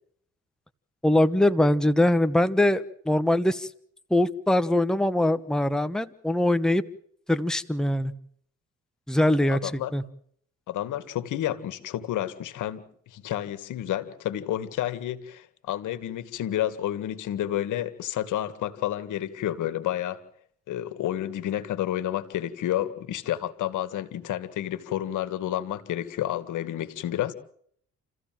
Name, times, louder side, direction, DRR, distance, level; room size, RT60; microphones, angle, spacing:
voice 1, 1.0-3.7 4.1-6.8 7.3-8.1 9.1-10.0, left 1 dB, ahead, 10 dB, 1.2 m, -22 dB
voice 2, 9.5-9.9 10.7-20.2 20.7-27.3, left 12 dB, 80° left, 13 dB, 2.0 m, -30 dB
29.0 x 15.0 x 7.7 m, 0.65 s
cardioid pair, 90°, 30 cm